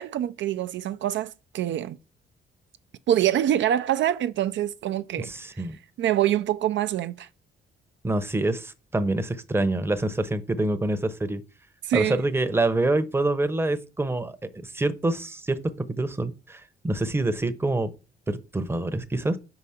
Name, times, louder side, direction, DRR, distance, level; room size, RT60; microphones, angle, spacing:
voice 1, 0.0-2.0 3.1-5.3 6.0-7.3 11.8-12.2, right 11 dB, 70° right, 0.5 m, -25 dB
voice 2, 5.2-5.8 8.0-11.4 11.9-14.4 14.6-17.9 18.3-19.4, right 2 dB, 10° right, 0.8 m, -26 dB
4.9 x 4.8 x 5.7 m
cardioid pair, 90°, 20 cm